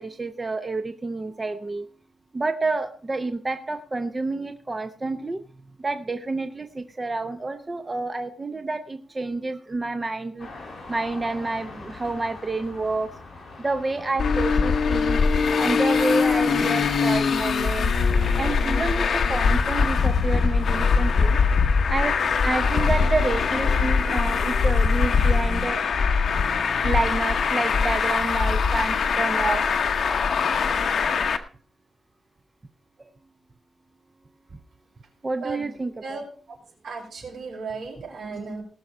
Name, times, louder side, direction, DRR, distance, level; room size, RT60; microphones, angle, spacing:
voice 1, 0.0-1.9 2.3-5.4 5.8-10.5 10.9-13.1 13.6-15.2 15.6-17.9 18.4-21.4 21.9-22.1 22.4-25.8 26.8-29.7 35.2-36.2, right 3 dB, 20° right, 8 dB, 0.7 m, -29 dB
sound 1, 10.4-23.9, left 2 dB, 40° left, 5.2 m, -42 dB
Traffic noise roadway noise, 14.2-31.4, left 5 dB, 60° left, 1.0 m, -22 dB
voice 2, 36.8-38.6, right 4 dB, 75° right, 1 dB, 5.3 m, -35 dB
18.5 x 6.3 x 5.4 m, 0.42 s
wide cardioid pair, 175°, 0 cm